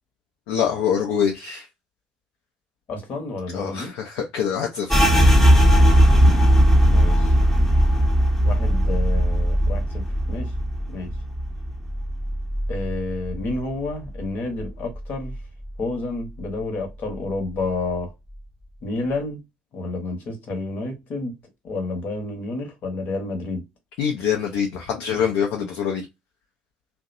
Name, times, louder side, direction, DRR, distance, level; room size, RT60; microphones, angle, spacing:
voice 1, 0.5-1.7 3.5-5.1 6.2-6.3 24.0-26.0, left 7 dB, 70° left, 0.5 m, -25 dB
voice 2, 2.9-3.9 6.8-7.4 8.4-10.6 10.9-11.1 12.7-15.4 15.8-18.1 18.8-19.4 19.7-21.4 21.6-23.6, left 2 dB, 55° left, 1.0 m, -30 dB
sound 1, 4.9-14.3 14.6-15.8 16.2-16.6 17.1-17.7, equal, 10° left, 0.8 m, -19 dB
2.6 x 2.1 x 2.4 m
hypercardioid pair, 60°, 4 cm